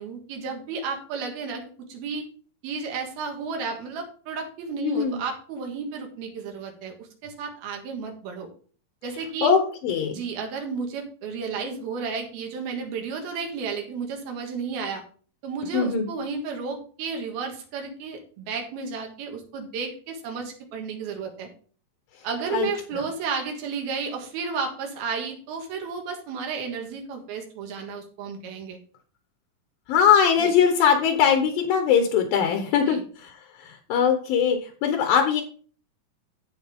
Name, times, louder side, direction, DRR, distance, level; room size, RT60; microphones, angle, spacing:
voice 1, 0.0-2.3 2.6-8.5 9.0-9.5 10.1-15.0 15.4-21.5 22.2-28.8 30.4-30.5 32.9-33.0, right 5 dB, 80° right, 3 dB, 3.5 m, -32 dB
voice 2, 4.8-5.2 9.4-10.2 15.7-16.1 22.5-22.7 22.9-23.0 29.9-35.4, left 7 dB, 75° left, 5 dB, 2.7 m, -21 dB
15.0 x 5.3 x 3.6 m, 0.42 s
omnidirectional pair, 4.3 m